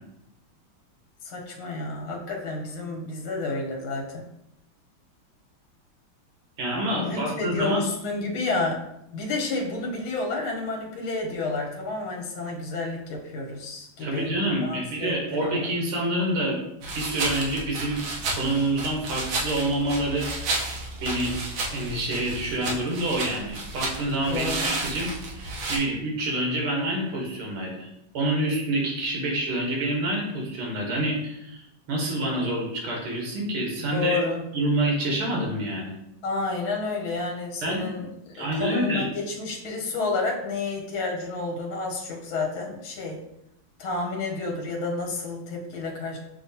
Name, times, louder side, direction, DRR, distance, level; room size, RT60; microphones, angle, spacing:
voice 1, 1.2-4.2 7.0-8.8 9.1-14.3 14.6-15.7 24.3-24.7 33.8-34.4 36.2-43.2 43.8-46.2, left 3 dB, 75° left, 0 dB, 1.7 m, -30 dB
voice 2, 6.6-7.8 14.0-16.6 16.9-18.0 18.3-20.6 21.0-21.3 21.7-27.9 28.1-31.6 31.9-34.2 34.5-35.9 37.6-37.9 38.3-39.1, right 1 dB, 85° right, -1 dB, 2.0 m, -27 dB
sound 1, 16.8-25.8, right 2 dB, 70° right, 1.5 m, -32 dB
6.9 x 2.8 x 2.7 m, 0.82 s
omnidirectional pair, 2.3 m